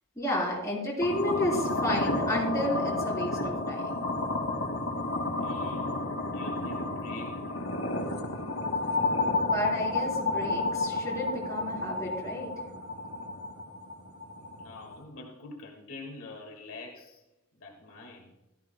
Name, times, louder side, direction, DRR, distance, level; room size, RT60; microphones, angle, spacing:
voice 1, 0.2-4.1 9.4-12.5, left 1 dB, 15° left, -4 dB, 3.9 m, -31 dB
sound 1, 1.0-15.0, left 2 dB, 90° left, 2.3 m, -31 dB
voice 2, 5.4-6.1 6.3-7.7 14.6-17.2 17.5-18.3, left 2 dB, 70° left, 0 dB, 1.9 m, -46 dB
16.5 x 13.0 x 2.2 m, 0.91 s
head